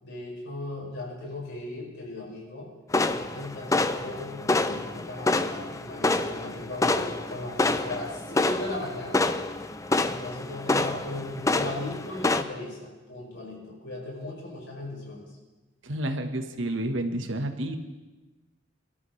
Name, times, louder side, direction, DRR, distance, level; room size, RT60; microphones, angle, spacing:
voice 1, 0.0-2.7 3.0-9.2 10.0-15.3, left 2 dB, 65° left, -3 dB, 5.6 m, -37 dB
sound 1, 2.9-12.4, left 2 dB, 15° left, 0.5 m, -27 dB
voice 2, 15.8-17.8, right 1 dB, 75° right, 6 dB, 1.3 m, -30 dB
25.0 x 12.5 x 3.3 m, 1.2 s
head